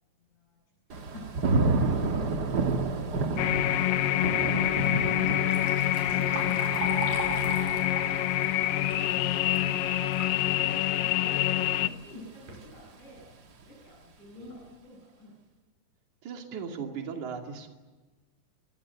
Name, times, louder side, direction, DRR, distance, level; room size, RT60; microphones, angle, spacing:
voice 1, 0.2-0.6 0.9-3.2 10.6-15.3, left 1 dB, 60° left, -2 dB, 9.6 m, -50 dB
Thunder / Rain, 0.9-11.8 12.2-12.7, right 3 dB, 45° right, 1.4 m, -32 dB
sound 1, 3.4-11.9, left 13 dB, 90° left, 2.7 m, -26 dB
Liquid, 5.3-10.4 10.8-10.9 11.8-11.9 12.3-12.6 13.2-13.3 13.8-13.9 14.4-14.6, right 4 dB, 85° right, 7.7 m, -39 dB
voice 2, 16.2-17.7, right 6 dB, 60° right, 3 dB, 3.8 m, -37 dB
26.0 x 23.0 x 8.2 m, 1.3 s
omnidirectional pair, 3.9 m